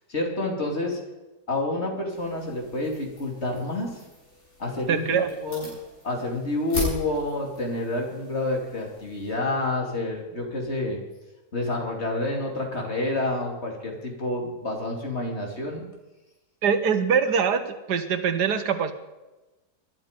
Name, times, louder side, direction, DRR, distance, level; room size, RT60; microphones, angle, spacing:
voice 1, 0.1-1.0 1.5-4.0 4.6-5.7 6.0-11.0 11.5-15.8, left 2 dB, 40° left, 1 dB, 3.0 m, -28 dB
sound 1, 2.1-9.3, left 2 dB, 65° left, 8.2 m, -39 dB
voice 2, 4.9-5.3 16.6-18.9, right 7 dB, 75° right, 10 dB, 1.6 m, -23 dB
20.5 x 12.0 x 5.2 m, 1.1 s
omnidirectional pair, 1.8 m